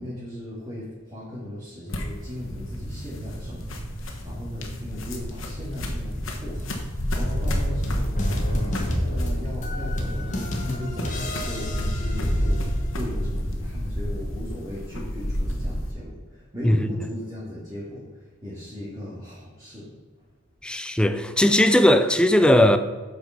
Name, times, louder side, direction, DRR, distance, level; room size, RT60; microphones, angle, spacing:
voice 1, 0.0-19.9, left 1 dB, 20° right, 2.0 m, -37 dB
sound 1, 1.9-15.9, equal, 80° left, 1.3 m, -30 dB
sound 2, 2.3-14.4, equal, 55° right, 2.1 m, -37 dB
sound 3, 7.1-12.9, left 1 dB, 40° left, 1.4 m, -30 dB
voice 2, 20.6-22.8, left 1 dB, 5° left, 0.4 m, -18 dB
7.9 x 5.1 x 5.7 m
head